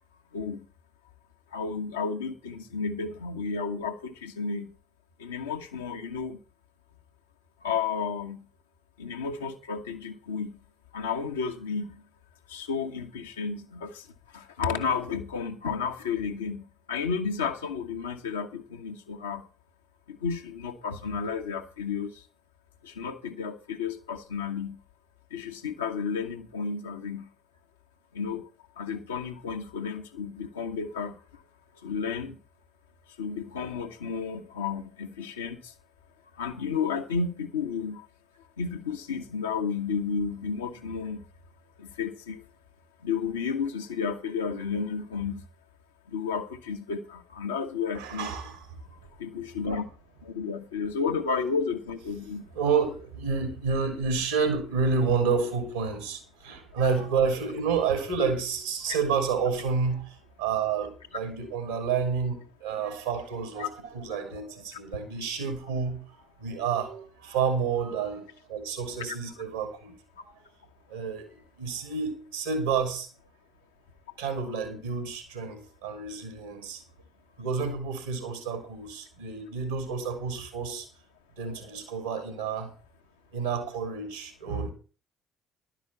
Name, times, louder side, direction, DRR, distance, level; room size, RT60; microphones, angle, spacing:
voice 1, 1.5-4.7 5.2-6.4 7.6-8.4 9.0-10.5 10.9-11.9 12.5-13.9 14.3-16.6 16.9-19.4 20.1-22.1 23.0-24.8 25.3-27.2 28.1-28.4 28.8-31.1 31.8-32.4 33.2-35.6 36.4-38.0 38.6-41.2 41.8-42.4 43.0-45.3 46.1-48.3 49.2-49.8 50.2-52.4 63.6-63.7, left 5 dB, 75° left, 4 dB, 1.1 m, -32 dB
voice 2, 47.9-48.7 52.5-66.0 66.4-69.9 70.9-73.1 74.2-76.8 77.4-80.9 81.4-82.7 83.3-84.7, right 5 dB, 80° right, 6 dB, 3.1 m, -29 dB
11.5 x 6.0 x 7.0 m, 0.36 s
figure-of-eight pair, 50°, 0 cm